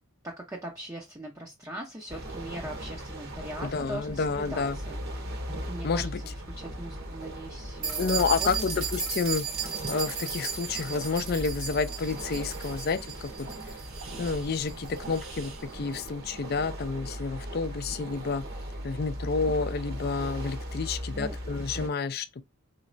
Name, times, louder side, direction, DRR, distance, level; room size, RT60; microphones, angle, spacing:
voice 1, 0.2-5.3 5.7-8.8 20.8-21.4, right 1 dB, 15° right, 0.6 m, -41 dB
sound 1, 2.1-21.9, equal, 50° right, 1.1 m, -38 dB
voice 2, 3.6-4.8 5.8-6.2 8.0-9.4 9.9-13.5 14.2-18.4 18.8-22.4, left 4 dB, 45° left, 0.4 m, -30 dB
sound 2, 7.8-15.6, right 6 dB, 80° right, 1.4 m, -36 dB
4.0 x 3.1 x 2.5 m
head